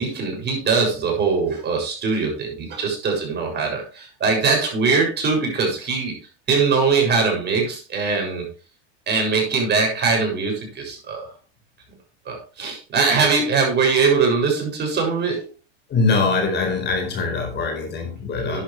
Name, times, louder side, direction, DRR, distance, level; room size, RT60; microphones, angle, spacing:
voice 1, 0.0-6.2 6.5-8.4 9.1-11.3 12.3-15.5 18.3-18.6, right 4 dB, 30° right, 7.2 m, -21 dB
voice 2, 15.9-18.6, left 4 dB, 35° left, 4.6 m, -22 dB
11.5 x 10.5 x 3.4 m
hypercardioid pair, 110°, 32 cm